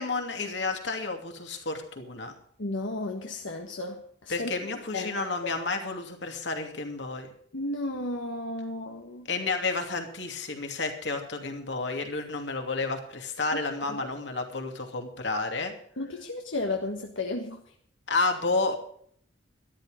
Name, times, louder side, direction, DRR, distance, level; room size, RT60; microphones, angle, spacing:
voice 1, 0.0-2.3 4.3-7.3 9.3-15.7 18.1-18.8, left 3 dB, 70° left, 4 dB, 2.7 m, -31 dB
voice 2, 2.6-4.5 4.9-5.1 7.5-9.3 13.9-14.1 16.0-17.6, left 2 dB, 90° left, 2 dB, 1.5 m, -33 dB
13.0 x 13.0 x 5.1 m, 0.63 s
head